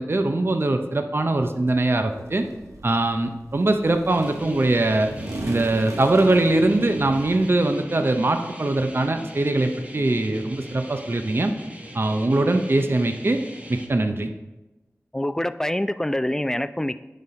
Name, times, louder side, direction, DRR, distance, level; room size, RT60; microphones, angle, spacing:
voice 1, 0.0-2.5 2.8-5.1 5.5-11.5 11.9-13.4 13.7-14.3, right 2 dB, 45° right, 6 dB, 0.6 m, -22 dB
sound 1, 2.1-7.5, right 1 dB, 85° right, 0.9 m, -38 dB
sound 2, 4.1-13.9, right 1 dB, 25° right, 1.0 m, -40 dB
voice 2, 15.1-17.0, left 1 dB, 10° left, 13 dB, 0.3 m, -25 dB
10.0 x 4.1 x 4.2 m, 1.1 s
wide cardioid pair, 50°, 5 cm